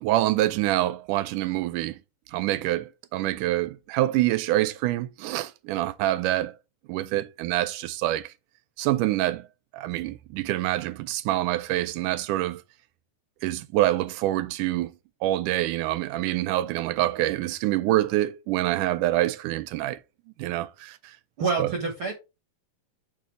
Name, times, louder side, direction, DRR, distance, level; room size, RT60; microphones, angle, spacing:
voice 1, 0.0-2.0 2.3-6.5 6.9-8.3 8.8-9.5 9.7-12.6 13.4-14.9 15.2-20.0 20.4-21.2 21.6-21.7, right 15 dB, 80° right, 2.0 m, -26 dB
voice 2, 21.4-22.1, right 4 dB, 50° right, 1.7 m, -27 dB
6.7 x 5.9 x 3.3 m
omnidirectional pair, 3.8 m